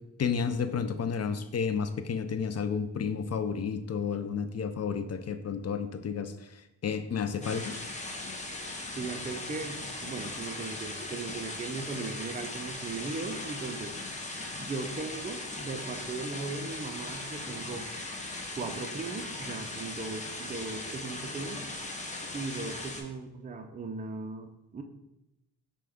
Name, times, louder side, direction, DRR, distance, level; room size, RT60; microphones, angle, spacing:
voice 1, 0.2-6.3 6.8-7.8, left 6 dB, 40° left, 10 dB, 0.4 m, -31 dB
sound 1, 7.4-23.0, left 2 dB, 15° left, 0.7 m, -39 dB
voice 2, 8.9-14.0 14.6-17.9 18.5-21.7 22.3-24.8, right 3 dB, 20° right, 6 dB, 0.4 m, -38 dB
6.0 x 2.3 x 3.5 m, 0.92 s
cardioid pair, 60°, 42 cm